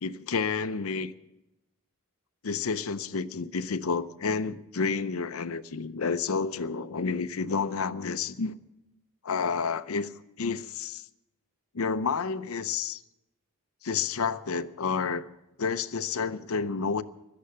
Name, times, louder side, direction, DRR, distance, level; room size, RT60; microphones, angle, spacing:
voice 1, 0.0-1.1 2.4-8.6 9.2-10.1 10.4-11.0 11.7-13.0 13.8-15.3 15.6-17.0, left 5 dB, 75° left, 0.6 m, -30 dB
16.5 x 12.5 x 6.7 m
head